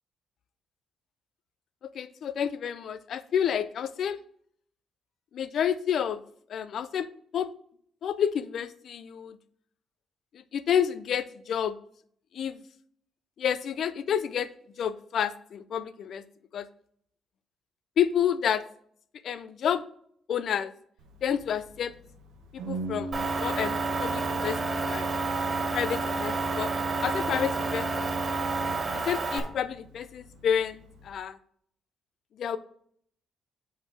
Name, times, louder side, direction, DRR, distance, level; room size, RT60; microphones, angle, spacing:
voice 1, 1.9-4.2 5.3-6.2 6.5-7.1 7.3-7.5 8.0-9.4 10.5-11.8 12.3-12.6 13.4-14.5 14.8-16.2 16.5-16.7 18.0-18.6 19.2-19.8 20.3-20.7 21.2-21.9 22.5-25.1 25.7-26.7 27.0-28.1 28.9-31.4 32.4-32.6, left 8 dB, 65° left, 15 dB, 0.4 m, -29 dB
Organ, 21.0-31.1, right 2 dB, 90° right, 0.8 m, -37 dB
Motor vehicle (road) / Engine, 23.1-29.4, right 4 dB, 40° right, 2.3 m, -30 dB
7.0 x 4.2 x 5.7 m, 0.65 s
cardioid pair, 90°, 0 cm